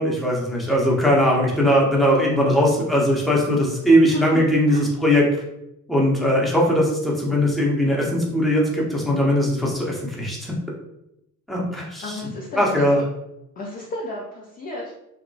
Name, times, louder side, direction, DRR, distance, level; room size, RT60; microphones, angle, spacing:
voice 1, 0.0-5.4 5.9-10.5 11.5-12.3 12.6-13.0, equal, ahead, -3 dB, 0.7 m, -20 dB
voice 2, 4.1-4.4 4.7-4.8 12.0-13.0 13.6-14.9, left 2 dB, 20° left, -4 dB, 0.3 m, -33 dB
2.9 x 2.1 x 2.6 m, 0.84 s
figure-of-eight pair, 55°, 49 cm